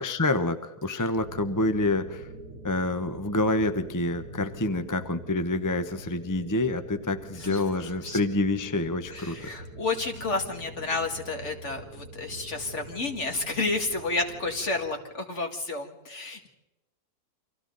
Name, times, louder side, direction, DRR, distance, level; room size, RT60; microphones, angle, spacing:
voice 1, 0.0-2.3 2.6-9.5, left 2 dB, 15° left, 9 dB, 0.7 m, -27 dB
sound 1, 1.2-14.9, right 2 dB, 70° right, 2.2 m, -44 dB
voice 2, 9.1-16.5, left 3 dB, 45° left, 3 dB, 2.4 m, -31 dB
29.5 x 25.0 x 4.0 m, 0.97 s
omnidirectional pair, 1.7 m